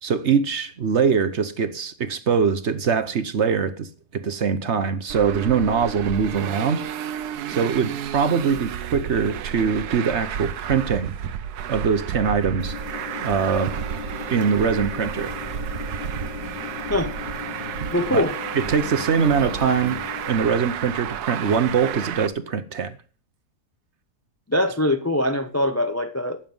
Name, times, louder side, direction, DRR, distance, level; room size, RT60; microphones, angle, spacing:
voice 1, 0.0-6.8 7.5-11.1 11.7-12.8 13.2-13.7 14.3-15.3 18.1-18.2 18.6-22.9, right 6 dB, 50° right, 1.0 m, -22 dB
Traffic noise roadway noise, 5.1-22.3, right 9 dB, 75° right, 1.3 m, -32 dB
sound 1, 12.6-20.3, left 8 dB, 90° left, 1.5 m, -37 dB
voice 2, 17.9-18.4 24.5-26.4, left 1 dB, 25° left, 0.3 m, -22 dB
16.5 x 7.2 x 5.4 m
omnidirectional pair, 1.8 m